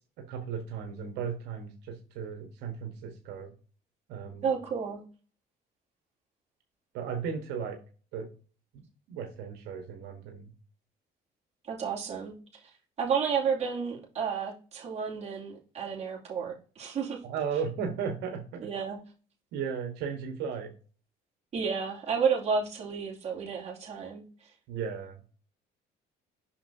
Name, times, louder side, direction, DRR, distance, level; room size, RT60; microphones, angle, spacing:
voice 1, 0.2-3.5 4.1-4.5 6.9-7.8 8.1-8.3 8.7-8.8 9.1-10.5 17.2-18.7 19.5-20.7 24.7-25.2, right 6 dB, 90° right, 4 dB, 1.2 m, -35 dB
voice 2, 4.4-5.0 11.7-12.3 13.0-17.2 18.6-19.0 21.5-24.5, right 6 dB, 40° right, -3 dB, 2.7 m, -31 dB
6.3 x 5.8 x 2.7 m, 0.36 s
cardioid pair, 110°, 17 cm